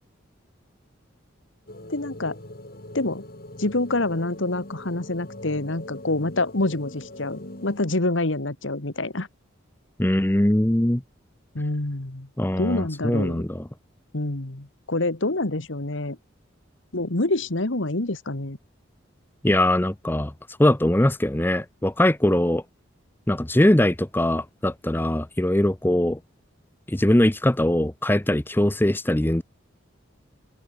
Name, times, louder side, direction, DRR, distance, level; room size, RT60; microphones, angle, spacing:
sound 1, 1.7-7.8, left 1 dB, 50° left, 3.6 m, -41 dB
voice 1, 1.9-2.4 2.9-3.2 3.6-9.3 11.5-12.3 12.6-13.4 14.1-16.2 16.9-18.6, left 2 dB, 70° left, 1.9 m, -26 dB
voice 2, 10.0-11.0 12.4-13.6 19.4-20.3 20.6-22.6 23.3-26.2 26.9-29.4, left 1 dB, 10° left, 0.7 m, -21 dB
open air
head